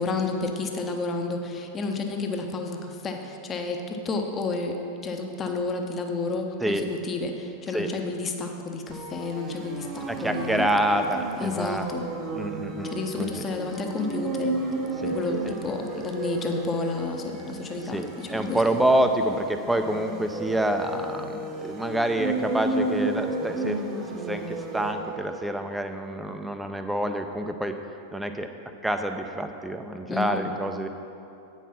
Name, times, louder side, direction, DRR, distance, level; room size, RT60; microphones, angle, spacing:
voice 1, 0.0-4.8 5.0-10.7 11.4-12.1 12.8-14.6 15.0-18.7 30.1-30.4, left 3 dB, 25° left, 4 dB, 0.9 m, -31 dB
sound 1, 8.9-25.5, right 2 dB, 30° right, 1.0 m, -33 dB
voice 2, 10.1-11.9 12.3-12.9 13.2-13.5 15.0-15.2 15.5-15.6 17.9-23.8 24.1-27.8 28.1-28.5 28.8-30.9, right 1 dB, 5° right, 6 dB, 0.6 m, -27 dB
9.1 x 5.7 x 6.0 m, 2.7 s
figure-of-eight pair, 90°, 0 cm